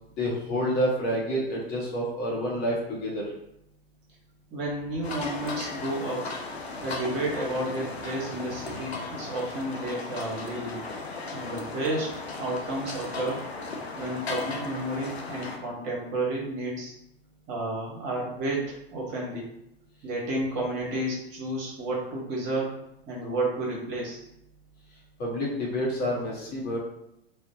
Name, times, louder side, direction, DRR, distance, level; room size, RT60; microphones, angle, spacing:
voice 1, 0.2-3.2 25.2-26.8, equal, 30° left, -4 dB, 0.7 m, -28 dB
voice 2, 4.5-6.4 6.8-10.9 11.3-13.4 13.9-16.9 17.5-19.5 20.0-24.3, right 1 dB, 35° right, -4 dB, 1.0 m, -31 dB
sound 1, 5.0-15.6, left 3 dB, 85° left, 0.5 m, -36 dB
2.5 x 2.0 x 2.6 m, 0.80 s
figure-of-eight pair, 95°, 31 cm